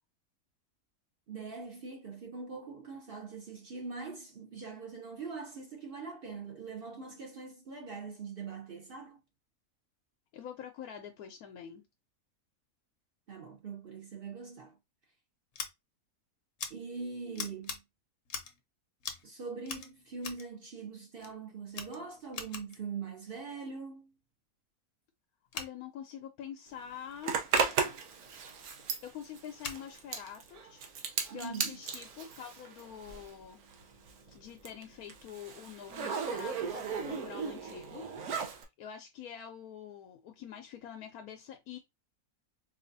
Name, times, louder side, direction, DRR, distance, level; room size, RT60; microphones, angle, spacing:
voice 1, 1.3-9.2 13.3-14.8 16.7-17.8 19.2-24.1 31.3-31.8, right 5 dB, 50° right, 0.8 m, -42 dB
voice 2, 10.3-11.9 25.5-27.4 29.0-30.8 31.3-33.6 34.3-38.1 38.8-41.8, left 9 dB, 85° left, 1.1 m, -46 dB
Scissors, 15.5-15.7 16.6-16.7 17.3-17.8 18.3-18.6 19.0-19.3 19.6-20.5 21.2-21.3 21.7-22.8 25.5-25.7 27.5-27.7 29.6-29.8, left 6 dB, 60° left, 0.9 m, -41 dB
Zipper (clothing), 27.2-33.4 33.7-38.6, right 6 dB, 85° right, 1.3 m, -36 dB
4.5 x 2.4 x 2.6 m
omnidirectional pair, 1.5 m